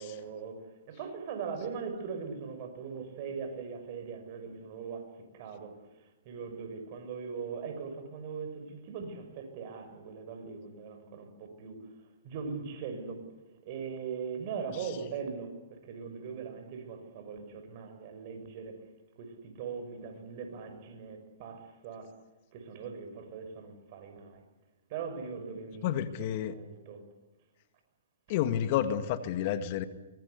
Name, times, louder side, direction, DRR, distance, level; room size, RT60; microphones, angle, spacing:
voice 1, 0.0-5.8 6.2-11.8 12.2-13.2 13.6-18.8 19.2-22.1 22.5-24.4 24.9-27.0, right 6 dB, 45° right, 6.3 m, -40 dB
voice 2, 25.8-26.5 28.3-29.8, left 10 dB, 45° left, 1.9 m, -30 dB
24.0 x 23.0 x 8.3 m
hypercardioid pair, 130°, 0 cm